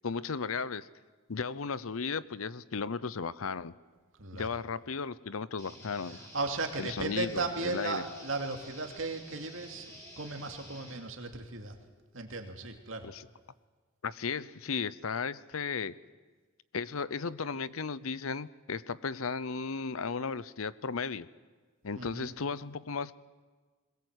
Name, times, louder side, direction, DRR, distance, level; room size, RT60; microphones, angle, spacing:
voice 1, 0.0-0.9 1.3-3.7 4.3-6.2 6.8-8.0 13.0-13.3 14.0-15.9 16.7-21.3 21.8-23.1, left 5 dB, 85° left, 18 dB, 0.7 m, -35 dB
voice 2, 4.2-4.6 6.1-11.8 12.1-13.1 22.0-22.3, right 3 dB, 70° right, 5 dB, 2.6 m, -36 dB
sound 1, 5.6-11.0, equal, 15° left, 5.0 m, -50 dB
21.5 x 20.5 x 8.1 m, 1.4 s
head